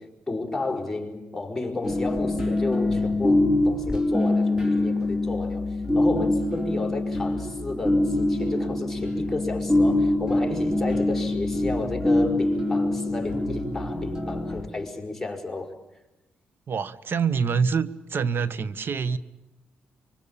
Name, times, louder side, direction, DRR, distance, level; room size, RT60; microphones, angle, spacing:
voice 1, 0.0-15.7, left 3 dB, 5° left, 5.4 m, -32 dB
sound 1, 1.8-14.7, left 2 dB, 15° right, 4.3 m, -24 dB
voice 2, 16.7-19.2, right 6 dB, 55° right, 1.3 m, -26 dB
25.0 x 24.0 x 8.9 m
cardioid pair, 65°, 4 cm